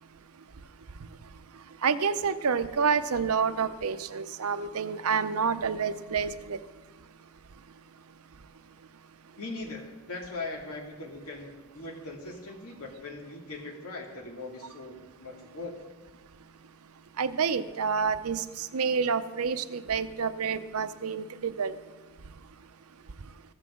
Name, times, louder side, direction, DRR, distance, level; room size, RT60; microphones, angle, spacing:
voice 1, 1.8-6.6 17.2-21.8, right 6 dB, 85° right, 12 dB, 0.7 m, -28 dB
voice 2, 9.4-15.8, left 2 dB, 85° left, 0 dB, 2.5 m, -40 dB
14.5 x 14.0 x 3.8 m, 1.3 s
head